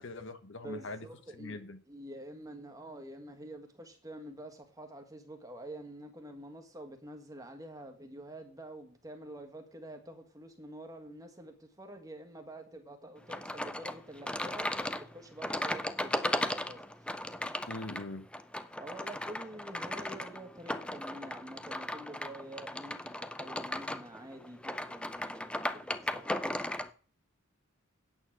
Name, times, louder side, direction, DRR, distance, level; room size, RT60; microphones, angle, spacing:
voice 1, 0.0-1.1 1.4-1.8 17.7-18.3, left 2 dB, 65° left, 10 dB, 1.2 m, -42 dB
voice 2, 0.6-14.7 15.0-17.2 18.8-26.4, right 1 dB, 15° right, 5 dB, 1.6 m, -47 dB
sound 1, 13.3-26.9, left 1 dB, 5° left, 0.5 m, -36 dB
8.8 x 8.5 x 5.9 m, 0.42 s
head